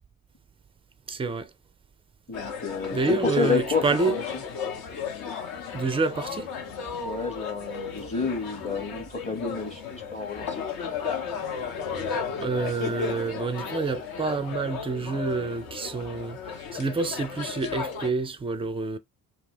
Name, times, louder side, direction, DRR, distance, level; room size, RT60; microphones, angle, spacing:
voice 1, 1.1-1.5 2.9-4.1 5.7-6.5 11.3-19.0, right 4 dB, 15° right, 0.4 m, -28 dB
sound 1, 2.3-18.1, left 6 dB, 55° left, 0.8 m, -34 dB
voice 2, 2.3-4.2 7.0-10.7, left 4 dB, 15° left, 0.8 m, -30 dB
2.5 x 2.2 x 3.3 m
figure-of-eight pair, 45°, 45 cm